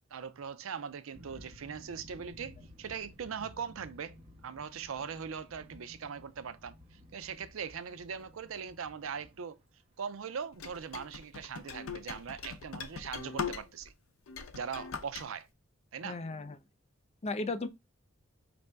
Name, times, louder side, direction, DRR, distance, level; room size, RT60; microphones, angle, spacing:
voice 1, 0.1-4.2 4.4-9.6 10.0-13.9 14.5-15.5 15.9-16.2, right 6 dB, 75° right, 0.5 m, -40 dB
sound 1, 1.1-10.5, left 1 dB, 30° right, 1.1 m, -55 dB
sound 2, 10.6-13.9 14.3-15.2, left 6 dB, 75° left, 0.6 m, -40 dB
voice 2, 16.0-16.6 17.2-17.7, left 3 dB, 30° left, 0.4 m, -35 dB
5.3 x 2.6 x 3.3 m
head